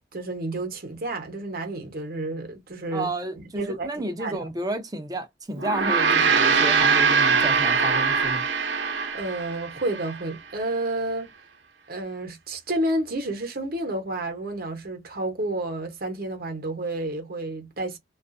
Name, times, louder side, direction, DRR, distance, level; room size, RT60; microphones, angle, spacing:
voice 1, 0.1-3.1 3.6-3.9 4.2-4.5 9.1-11.3 11.9-18.0, right 2 dB, 55° right, 0.8 m, -30 dB
voice 2, 2.9-8.5, right 1 dB, 20° right, 0.5 m, -31 dB
Gong, 5.5-10.2, right 5 dB, 90° right, 0.6 m, -22 dB
2.3 x 2.1 x 2.5 m
head